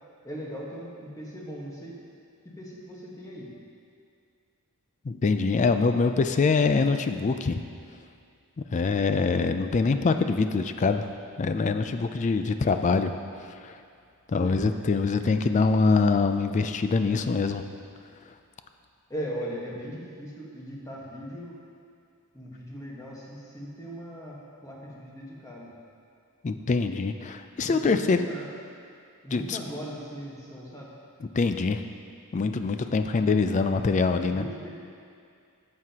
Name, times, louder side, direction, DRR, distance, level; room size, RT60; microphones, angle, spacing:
voice 1, 0.2-2.0 2.4-3.5 14.4-14.6 19.1-21.6 22.3-25.7 27.7-28.5 29.2-30.9 34.3-34.7, equal, 15° left, -4 dB, 1.3 m, -39 dB
voice 2, 5.1-7.6 8.7-11.1 11.4-13.1 13.5-13.8 14.3-17.6 26.4-28.3 29.3-29.6 31.3-31.8 32.3-34.4, left 4 dB, 35° left, 8 dB, 0.3 m, -24 dB
10.5 x 7.7 x 2.9 m, 2.3 s
head